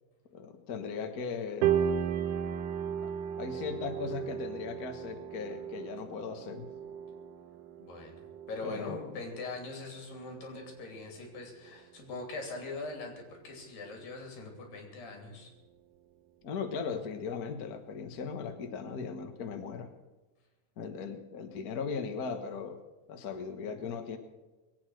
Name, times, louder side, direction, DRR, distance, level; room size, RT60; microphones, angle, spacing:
voice 1, 0.3-1.8 3.0-3.1 3.4-6.7 8.6-9.2 16.4-19.9 20.8-22.8 23.1-24.2, left 5 dB, 55° left, 6 dB, 1.0 m, -38 dB
sound 1, 1.6-11.0 11.4-11.7 12.2-12.3 12.9-13.0, right 9 dB, 80° right, 2.2 m, -35 dB
voice 2, 7.8-15.5, left 3 dB, 85° left, 2 dB, 4.8 m, -42 dB
21.5 x 8.8 x 6.4 m, 1.2 s
omnidirectional pair, 3.9 m